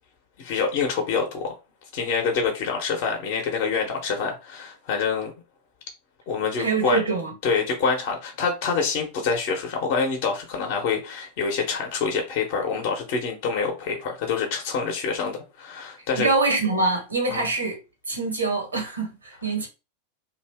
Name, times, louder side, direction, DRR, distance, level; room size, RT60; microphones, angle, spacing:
voice 1, 0.4-1.5 1.9-5.3 6.3-7.0 7.4-16.3 17.3-17.5, left 5 dB, 45° left, 0.8 m, -26 dB
voice 2, 6.6-7.3 16.1-17.8 18.1-19.1 19.4-19.7, right 3 dB, 75° right, 1.2 m, -24 dB
2.7 x 2.5 x 3.4 m
figure-of-eight pair, 90°, 0 cm